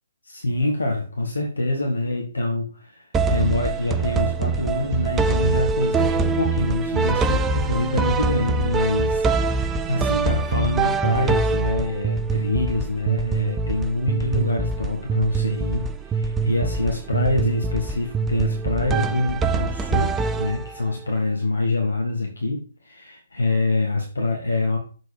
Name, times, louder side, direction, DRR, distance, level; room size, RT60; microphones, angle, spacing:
voice 1, 0.3-24.8, left 2 dB, 75° left, 0 dB, 1.6 m, -25 dB
sound 1, 3.1-21.0, right 4 dB, 15° right, 0.5 m, -24 dB
6.8 x 4.4 x 5.0 m, 0.39 s
figure-of-eight pair, 130°, 0 cm